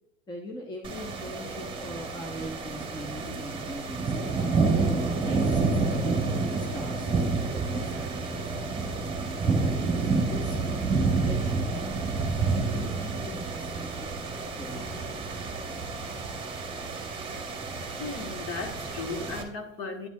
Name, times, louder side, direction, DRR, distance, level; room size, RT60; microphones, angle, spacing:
voice 1, 0.3-4.4 4.9-8.6 9.5-9.8 10.2-11.7 12.5-14.2 14.6-15.1, equal, 10° left, 1 dB, 1.0 m, -42 dB
sound 1, 0.8-19.4, right 4 dB, 15° right, 1.6 m, -29 dB
voice 2, 18.0-20.1, left 4 dB, 35° left, 4 dB, 1.5 m, -36 dB
9.9 x 7.8 x 2.3 m, 0.77 s
hypercardioid pair, 115°, 39 cm